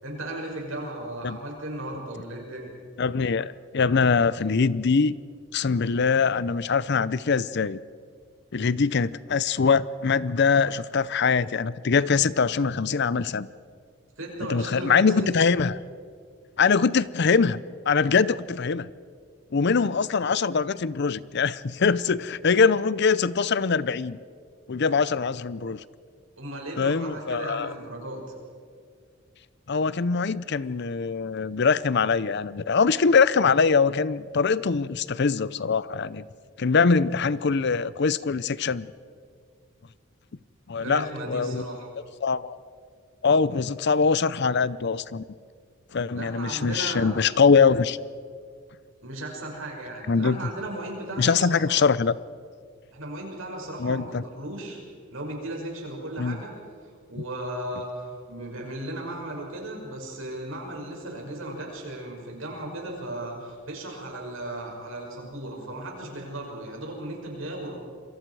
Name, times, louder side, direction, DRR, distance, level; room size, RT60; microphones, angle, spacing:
voice 1, 0.0-2.7 14.2-15.4 26.4-28.2 40.8-41.9 46.2-47.2 49.0-51.8 52.9-54.8 55.1-56.5 57.1-67.8, right 1 dB, 80° right, 0 dB, 6.1 m, -36 dB
voice 2, 3.0-5.1 5.5-7.8 8.5-13.5 14.5-15.8 16.6-18.9 19.5-24.2 24.7-25.8 26.8-27.7 29.7-36.3 36.6-38.9 40.7-41.7 42.2-42.6 43.2-45.2 45.9-48.1 50.1-50.4 51.2-52.2 53.8-54.2 56.2-56.4, left 5 dB, 55° left, 18 dB, 0.6 m, -23 dB
27.5 x 23.0 x 4.8 m, 2.1 s
head